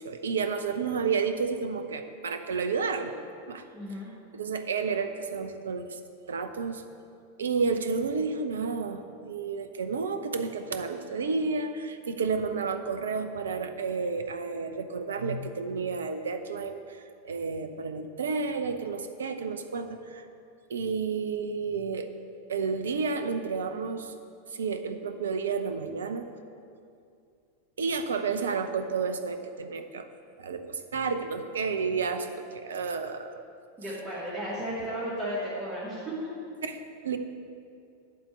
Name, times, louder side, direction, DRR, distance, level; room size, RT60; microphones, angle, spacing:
voice 1, 0.0-3.2 3.5-3.6 4.3-6.0 6.3-6.8 7.4-20.2 20.7-22.1 22.5-24.1 24.5-26.3 27.8-30.1 30.4-33.4 36.6-37.2, right 5 dB, 65° right, 9 dB, 0.7 m, -31 dB
voice 2, 3.7-4.1 33.8-36.1, equal, 20° right, -10 dB, 2.7 m, -34 dB
11.5 x 4.4 x 7.9 m, 2.5 s
figure-of-eight pair, 90°, 0 cm